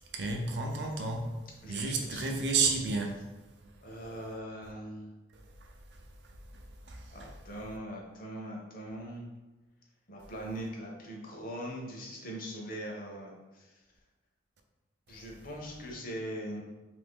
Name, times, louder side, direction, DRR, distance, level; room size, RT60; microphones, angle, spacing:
voice 1, 0.1-1.3 1.7-3.2 6.9-7.3, right 4 dB, 60° right, 3 dB, 0.5 m, -31 dB
voice 2, 1.6-2.4 3.8-5.1 7.1-9.3 10.1-13.7 15.1-16.6, equal, 50° left, 0 dB, 0.7 m, -41 dB
2.9 x 2.6 x 3.6 m, 1.1 s
head